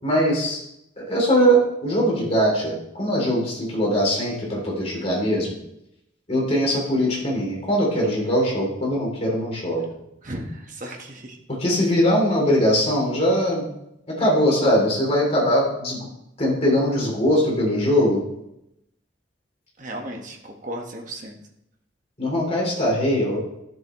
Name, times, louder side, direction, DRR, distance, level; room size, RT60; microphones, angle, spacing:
voice 1, 0.0-0.6 1.0-5.5 6.3-9.8 11.6-13.7 14.1-16.1 16.4-18.2 22.2-23.4, equal, 35° left, -3 dB, 3.3 m, -21 dB
voice 2, 10.2-11.4 19.8-21.4, right 1 dB, 45° right, 1 dB, 1.5 m, -35 dB
12.5 x 7.2 x 3.2 m, 0.82 s
head